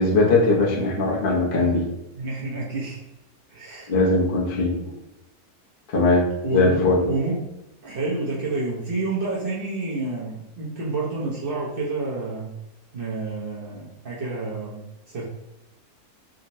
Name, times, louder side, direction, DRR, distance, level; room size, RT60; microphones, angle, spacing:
voice 1, 0.0-1.8 3.9-4.7 5.9-6.2 6.5-7.0, left 2 dB, 50° left, -3 dB, 0.6 m, -20 dB
voice 2, 0.8-1.3 2.1-3.0 3.5-3.9 4.8-4.9 6.4-7.5 7.8-12.5 12.9-15.2, right 2 dB, 50° right, -6 dB, 0.7 m, -29 dB
3.8 x 2.1 x 2.6 m, 0.90 s
omnidirectional pair, 1.6 m